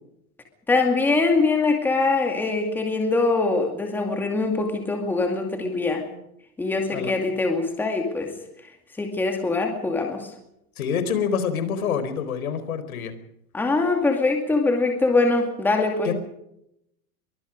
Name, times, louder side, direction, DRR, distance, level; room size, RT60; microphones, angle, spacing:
voice 1, 0.7-6.1 6.6-8.3 9.0-10.2 13.5-16.1, left 3 dB, 5° left, 3 dB, 2.3 m, -23 dB
voice 2, 10.8-13.2 16.0-16.1, left 7 dB, 75° left, 11 dB, 4.6 m, -26 dB
23.5 x 23.5 x 5.2 m, 0.79 s
supercardioid pair, 165°, 43 cm